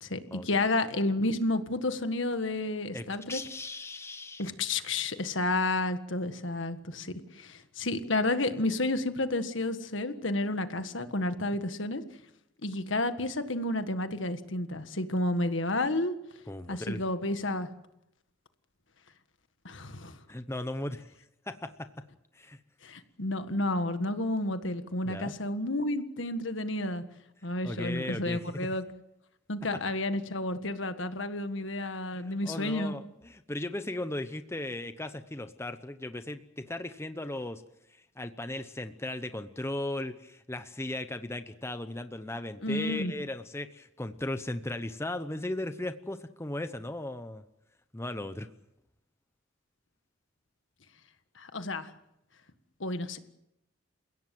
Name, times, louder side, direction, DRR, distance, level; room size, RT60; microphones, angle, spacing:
voice 1, 0.0-3.4 4.4-12.0 12.6-16.1 16.7-17.7 19.6-20.2 22.8-27.0 27.4-28.8 29.5-32.9 42.6-43.1 51.4-51.9 52.8-53.2, left 2 dB, 70° left, 9 dB, 1.7 m, -31 dB
voice 2, 2.9-4.5 16.5-17.0 20.3-21.1 21.5-21.9 22.3-22.6 25.0-25.3 27.6-28.6 32.1-37.6 37.9-47.4 47.9-48.5, left 1 dB, 15° left, 10 dB, 0.8 m, -37 dB
29.5 x 17.0 x 7.7 m, 0.86 s
head